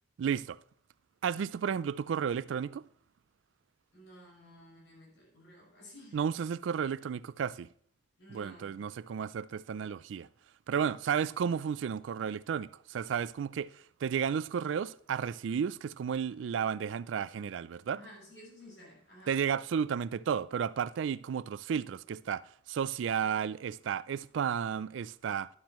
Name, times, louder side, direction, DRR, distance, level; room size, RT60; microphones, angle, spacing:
voice 1, 0.2-0.6 1.2-2.8 6.1-7.7 8.3-10.3 10.7-13.7 14.0-18.0 19.3-22.4 22.7-25.5, right 7 dB, 80° right, 0.3 m, -33 dB
voice 2, 3.9-6.2 8.2-8.8 17.9-19.4, equal, 75° left, 5.6 m, -53 dB
12.0 x 11.0 x 3.0 m
head